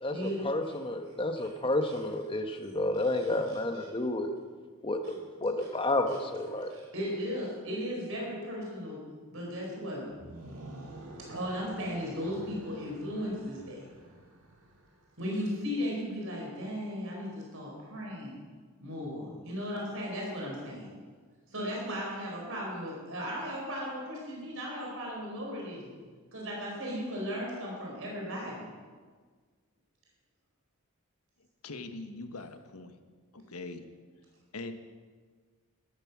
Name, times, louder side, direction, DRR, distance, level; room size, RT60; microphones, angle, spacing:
voice 1, 0.0-4.3 4.8-5.1 5.4-6.7, left 2 dB, 25° left, 6 dB, 1.0 m, -30 dB
voice 2, 3.5-3.9 5.0-5.1 5.6-5.7 6.1-6.2 6.5-9.0 9.3-10.1 10.6-10.8 11.3-13.8 15.2-18.4 18.8-20.9 21.5-26.0 26.3-28.7, equal, 65° right, -2 dB, 4.6 m, -36 dB
sound 1, 10.1-15.1, right 1 dB, 80° right, 2.9 m, -49 dB
voice 3, 31.6-33.0 33.3-33.8 34.5-34.7, left 3 dB, 85° left, 8 dB, 1.2 m, -42 dB
13.0 x 13.0 x 6.1 m, 1.5 s
head